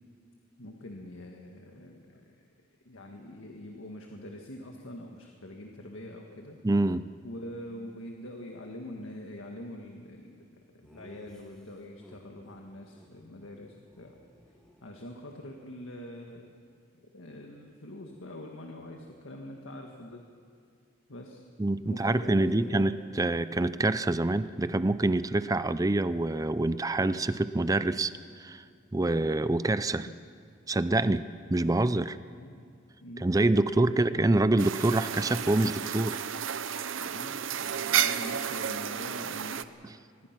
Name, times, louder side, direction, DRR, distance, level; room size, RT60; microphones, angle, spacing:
voice 1, 0.6-2.4 2.9-6.6 7.2-10.3 10.7-14.2 14.8-16.5 17.0-20.2 21.1-21.4 21.8-22.9 30.1-30.2 31.1-31.3 32.4-32.7 33.0-33.4 33.7-34.0 37.0-40.3, left 1 dB, 90° left, 1 dB, 1.7 m, -44 dB
voice 2, 6.6-7.1 21.6-28.1 28.4-28.6 28.9-30.1 30.7-31.2 31.5-32.2 33.2-36.3 39.8-40.0, right 2 dB, 20° right, 14 dB, 0.5 m, -26 dB
Laughter, 10.8-12.6 12.9-13.1 13.4-13.6 13.8-15.4, equal, 5° left, 2.7 m, -56 dB
sound 1, 34.6-39.6, right 9 dB, 80° right, 0.7 m, -32 dB
24.5 x 20.0 x 6.0 m, 2.3 s
head